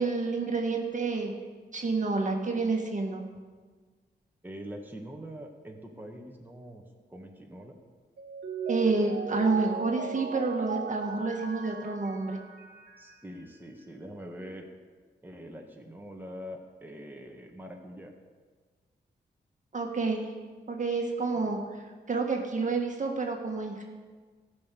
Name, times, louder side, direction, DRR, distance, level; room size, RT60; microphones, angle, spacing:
voice 1, 0.0-1.3 1.7-3.2 8.7-12.4 19.7-20.3 20.7-21.6 22.1-23.8, right 3 dB, 45° right, 1 dB, 1.8 m, -29 dB
voice 2, 4.4-6.8 7.1-7.8 13.0-14.7 15.2-18.1 21.4-21.5, equal, 10° right, 1 dB, 1.7 m, -44 dB
Mallet percussion, 8.2-13.1, right 5 dB, 65° right, 1.4 m, -37 dB
14.0 x 6.4 x 8.5 m, 1.5 s
cardioid pair, 70°, 18 cm